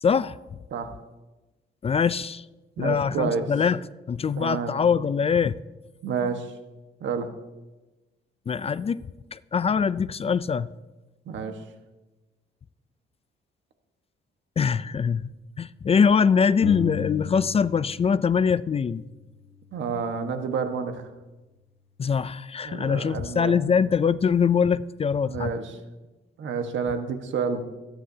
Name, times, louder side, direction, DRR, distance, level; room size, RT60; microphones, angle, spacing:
voice 1, 0.0-0.4 1.8-2.4 2.8-3.8 4.1-5.5 8.5-9.0 9.3-10.7 14.6-19.0 22.0-25.5, left 6 dB, 30° left, 16 dB, 0.4 m, -23 dB
voice 2, 2.8-3.5 4.4-4.7 6.0-6.5 7.0-7.3 11.3-11.6 19.7-21.0 22.6-23.6 25.2-25.7 26.4-27.6, right 5 dB, 70° right, 6 dB, 1.4 m, -29 dB
sound 1, 16.6-18.1 18.4-20.2, left 8 dB, 90° left, 1.4 m, -35 dB
25.0 x 10.0 x 2.8 m, 1.1 s
cardioid pair, 90°, 20 cm